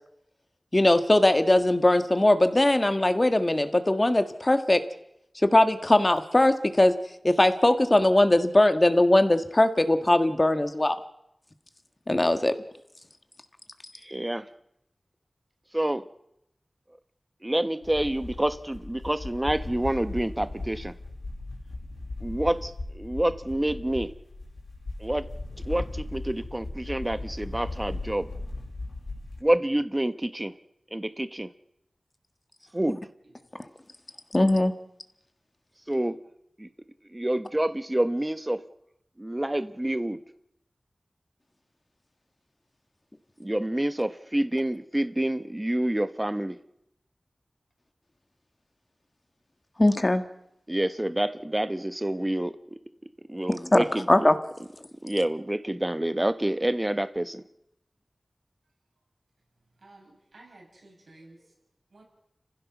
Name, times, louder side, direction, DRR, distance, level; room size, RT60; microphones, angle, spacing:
voice 1, 0.7-4.8 5.4-7.0 7.2-11.0 12.1-12.5 34.3-34.7 49.8-50.2 53.5-54.4, left 1 dB, 30° left, 8 dB, 1.6 m, -20 dB
voice 2, 14.0-14.5 15.7-16.0 17.4-20.9 22.2-24.1 25.0-25.2 25.7-28.3 29.4-30.5 30.9-31.5 32.7-33.0 35.9-36.2 36.6-36.7 37.1-38.6 39.2-40.2 43.4-46.6 50.7-52.8 53.3-54.3 55.0-57.4, right 1 dB, 20° right, 12 dB, 1.1 m, -28 dB
sound 1, 17.8-29.4, left 2 dB, 80° left, 4.8 m, -37 dB
voice 3, 59.8-61.4 61.9-62.0, right 2 dB, 80° right, 0 dB, 6.8 m, -53 dB
30.0 x 15.5 x 6.1 m, 0.81 s
wide cardioid pair, 45°, 0 cm